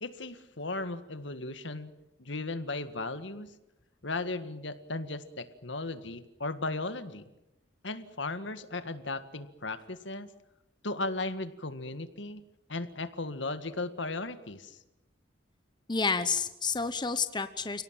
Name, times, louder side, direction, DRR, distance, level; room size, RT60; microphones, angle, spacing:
voice 1, 0.0-1.9 2.2-3.5 4.0-7.3 7.8-10.3 10.8-12.4 12.7-14.8, left 2 dB, 70° left, 11 dB, 1.8 m, -36 dB
voice 2, 15.9-17.8, left 4 dB, 25° left, 11 dB, 1.0 m, -30 dB
29.5 x 18.0 x 9.1 m, 0.94 s
head